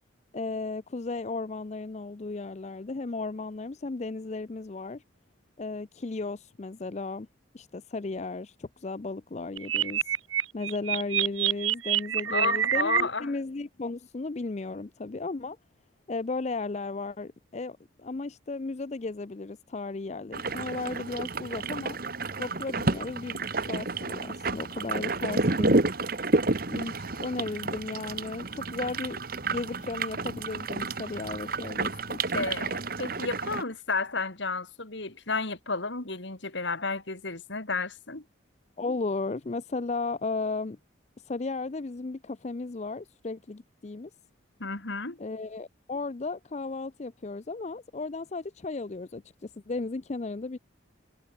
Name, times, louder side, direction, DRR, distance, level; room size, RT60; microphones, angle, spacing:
voice 1, 0.3-5.0 5.6-7.3 7.5-10.1 10.5-15.6 16.1-22.0 22.4-25.8 26.7-32.5 38.8-40.8 41.3-44.1 45.2-50.6, left 3 dB, 35° left, 0.5 m, -35 dB
sound 1, 9.6-13.0, right 10 dB, 85° right, 1.4 m, -26 dB
voice 2, 12.3-13.3 32.3-38.2 44.6-45.2, left 3 dB, 65° left, 2.6 m, -32 dB
sound 2, 20.3-33.6, right 3 dB, 45° right, 1.5 m, -30 dB
head